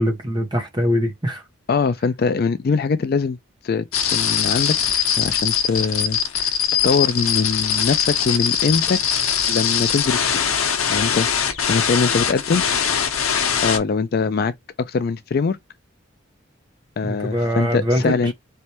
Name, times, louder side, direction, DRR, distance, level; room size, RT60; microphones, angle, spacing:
voice 1, 0.0-1.4 17.0-18.3, equal, 20° right, 1.2 m, -22 dB
voice 2, 1.7-3.4 3.6-3.8 4.1-4.8 5.2-6.5 6.8-9.0 9.5-10.3 10.9-12.6 13.6-14.5 14.8-15.6 17.0-18.3, left 4 dB, 50° left, 0.3 m, -22 dB
sound 1, 3.9-13.8, left 8 dB, 90° left, 0.8 m, -21 dB
4.0 x 3.3 x 2.9 m
head